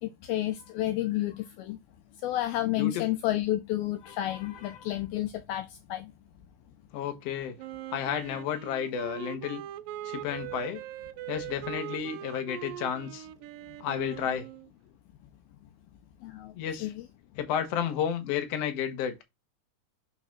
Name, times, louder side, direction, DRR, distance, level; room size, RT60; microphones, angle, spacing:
voice 1, 0.0-1.8 2.2-6.1 16.2-16.5 16.8-17.0, left 14 dB, 80° left, 2.4 m, -31 dB
voice 2, 6.9-7.6 7.9-9.6 10.0-10.8 11.3-13.3 13.8-14.5 16.6-16.9 17.4-19.1, left 9 dB, 60° left, 1.8 m, -32 dB
Wind instrument woodwind instrument, 7.6-14.7, right 13 dB, 85° right, 1.9 m, -41 dB
7.2 x 4.0 x 6.1 m
omnidirectional pair, 4.9 m